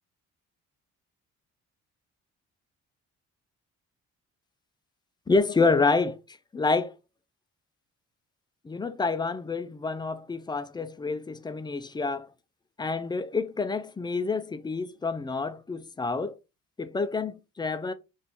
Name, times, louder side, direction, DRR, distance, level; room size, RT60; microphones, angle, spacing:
voice 1, 5.3-6.9 8.6-12.3 12.8-16.4 16.8-17.9, left 4 dB, 15° left, 0.3 m, -28 dB
2.8 x 2.5 x 3.6 m
cardioid pair, 90°, 30 cm